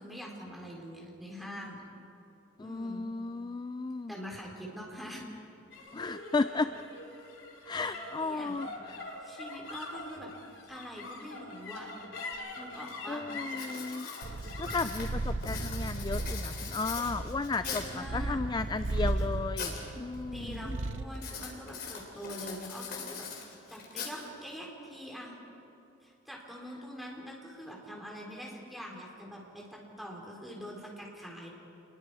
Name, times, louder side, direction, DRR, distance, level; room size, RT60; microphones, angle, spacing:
voice 1, 0.0-1.8 2.6-3.0 4.1-5.2 7.7-8.6 9.2-10.3 10.7-11.9 12.6-13.3 17.6-18.4 20.0-25.3 26.0-31.5, equal, ahead, -2 dB, 3.8 m, -44 dB
voice 2, 2.6-4.1 5.9-6.7 7.7-9.0 13.1-14.1 14.6-20.8, left 3 dB, 20° left, 11 dB, 0.4 m, -34 dB
sound 1, 5.7-22.3, left 2 dB, 80° left, 3.3 m, -46 dB
Writing, 12.3-12.4 12.9-13.1 13.5-18.0 18.6-19.8 20.1-20.6 21.1-24.6, left 6 dB, 55° left, 3.6 m, -41 dB
Purr, 14.2-21.1, right 2 dB, 75° right, 0.7 m, -36 dB
27.0 x 21.5 x 4.9 m, 2.9 s
head